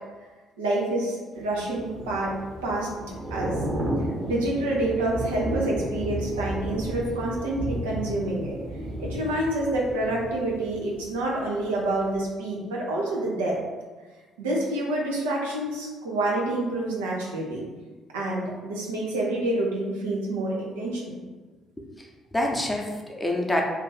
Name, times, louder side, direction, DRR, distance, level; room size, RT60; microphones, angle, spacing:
voice 1, 0.6-2.3 2.6-2.9 3.3-3.5 4.2-8.6 9.0-13.6 14.4-17.6 18.1-21.2, right 2 dB, 90° right, -3 dB, 0.6 m, -27 dB
Thunder / Rain, 1.5-11.5 11.8-12.1, equal, 40° right, 0.9 m, -33 dB
voice 2, 21.8-23.6, left 1 dB, 15° left, 0 dB, 0.7 m, -27 dB
2.6 x 2.5 x 3.9 m, 1.3 s
hypercardioid pair, 55°, 0 cm